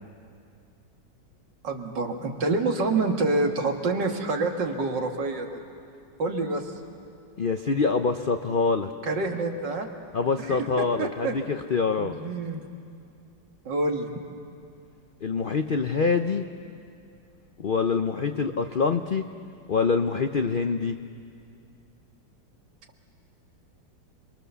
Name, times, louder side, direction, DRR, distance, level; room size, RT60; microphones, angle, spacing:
voice 1, 1.6-5.5 6.2-6.7 9.0-9.9 10.4-11.3 12.0-12.6 13.7-14.1, right 3 dB, 75° right, 3 dB, 2.5 m, -27 dB
voice 2, 7.4-8.9 10.1-12.2 15.2-16.5 17.6-19.3 19.7-21.0, left 4 dB, 75° left, 7 dB, 0.4 m, -25 dB
29.0 x 22.5 x 6.9 m, 2.4 s
omnidirectional pair, 1.9 m